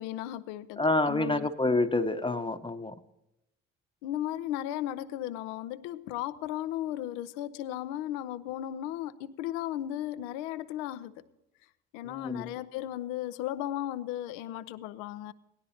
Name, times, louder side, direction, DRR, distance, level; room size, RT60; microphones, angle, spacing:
voice 1, 0.0-1.5 4.0-11.2 11.9-15.3, left 12 dB, 90° left, 15 dB, 0.5 m, -35 dB
voice 2, 0.8-2.9 12.1-12.5, left 2 dB, 15° left, 7 dB, 0.8 m, -28 dB
17.5 x 12.0 x 2.8 m, 0.89 s
hypercardioid pair, 50°, 30 cm